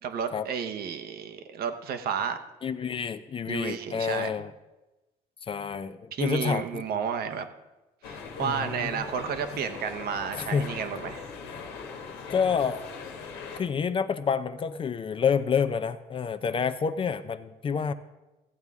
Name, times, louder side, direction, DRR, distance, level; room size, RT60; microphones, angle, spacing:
voice 1, 0.0-2.4 3.4-4.3 6.1-7.5 8.1-11.3, right 7 dB, 65° right, 8 dB, 0.9 m, -32 dB
voice 2, 2.6-4.5 5.5-6.8 8.4-9.0 9.5-9.6 10.3-10.7 12.3-12.9 13.6-17.9, left 6 dB, 30° left, 12 dB, 0.5 m, -28 dB
sound 1, 8.0-13.6, left 5 dB, 90° left, 1.4 m, -40 dB
14.5 x 8.1 x 3.6 m, 1.0 s
cardioid pair, 110°, 17 cm